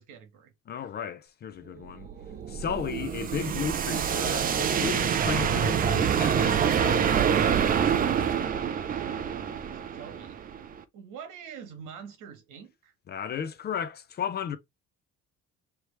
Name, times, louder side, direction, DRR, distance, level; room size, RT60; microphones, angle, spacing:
voice 1, 0.0-0.5 9.9-10.4 10.9-12.9, right 7 dB, 75° right, 1.6 m, -44 dB
voice 2, 0.7-2.1 2.5-7.5 13.1-14.6, left 8 dB, 35° left, 0.4 m, -34 dB
sound 1, 1.9-10.8, right 8 dB, 30° right, 0.4 m, -26 dB
4.7 x 3.1 x 3.1 m
cardioid pair, 165°, 31 cm